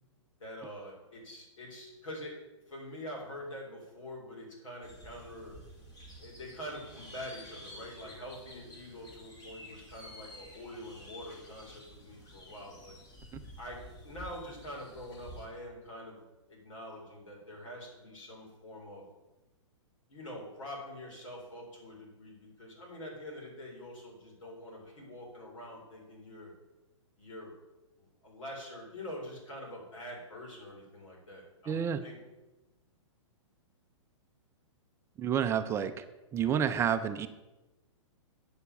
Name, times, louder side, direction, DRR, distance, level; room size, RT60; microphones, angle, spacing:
voice 1, 0.4-2.4 2.7-5.6 6.2-12.9 13.6-19.1 20.1-26.5 27.2-27.5 28.0-32.2, equal, 80° left, -2 dB, 4.2 m, -45 dB
sound 1, 4.8-15.5, equal, 25° left, 2.3 m, -51 dB
voice 2, 31.7-32.0 35.2-36.0 36.3-37.3, right 8 dB, 15° right, 10 dB, 0.5 m, -29 dB
8.6 x 6.7 x 6.9 m, 1.1 s
hypercardioid pair, 135°, 16 cm